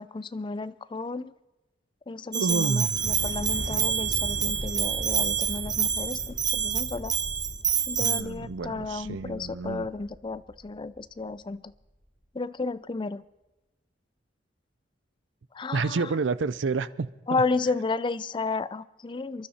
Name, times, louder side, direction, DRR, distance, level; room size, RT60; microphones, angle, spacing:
voice 1, 0.0-1.3 2.1-7.1 7.9-11.7 12.3-13.2 15.5-16.1 17.3-19.5, left 3 dB, 25° left, 16 dB, 0.4 m, -32 dB
Bell, 2.3-8.2, right 7 dB, 20° right, 0.6 m, -27 dB
voice 2, 2.3-3.0 8.0-9.9 15.7-17.4, right 4 dB, 90° right, 16 dB, 0.5 m, -29 dB
Thunder / Explosion, 2.9-11.1, equal, 65° left, 7.0 m, -39 dB
28.0 x 11.5 x 4.2 m, 1.1 s
head